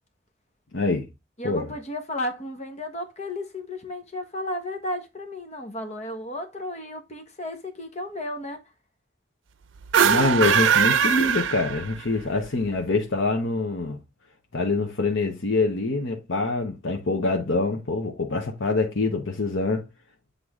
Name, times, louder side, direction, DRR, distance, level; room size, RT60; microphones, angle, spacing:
voice 1, 0.7-1.1 1.4-1.7 10.0-14.0 14.5-19.8, left 3 dB, 85° left, 1.0 m, -25 dB
voice 2, 1.4-8.6, left 1 dB, 35° left, 1.4 m, -33 dB
sound 1, 9.8-12.2, right 7 dB, 90° right, 0.5 m, -21 dB
8.1 x 3.8 x 3.6 m
head